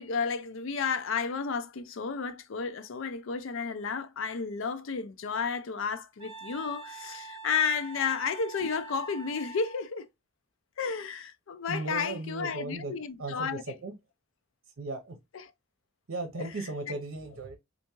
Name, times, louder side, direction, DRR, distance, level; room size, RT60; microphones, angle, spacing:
voice 1, 0.0-10.1 10.8-13.6 15.3-15.4 16.4-16.5, left 5 dB, 70° left, 0.5 m, -32 dB
Wind instrument woodwind instrument, 6.2-9.8, right 3 dB, 25° right, 0.8 m, -45 dB
voice 2, 11.7-12.9 13.2-13.9 14.8-15.2 16.1-17.6, right 2 dB, 70° right, 0.7 m, -36 dB
3.5 x 2.5 x 2.9 m
head